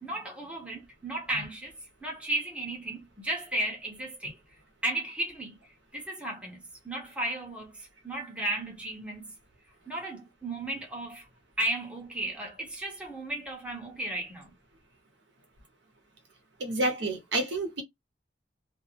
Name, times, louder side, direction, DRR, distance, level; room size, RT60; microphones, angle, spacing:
voice 1, 0.0-4.4 4.8-5.6 5.9-9.3 9.9-11.3 11.6-14.5, right 1 dB, 5° right, 0.7 m, -34 dB
voice 2, 16.6-17.8, right 2 dB, 65° right, 0.9 m, -29 dB
2.5 x 2.0 x 2.8 m
head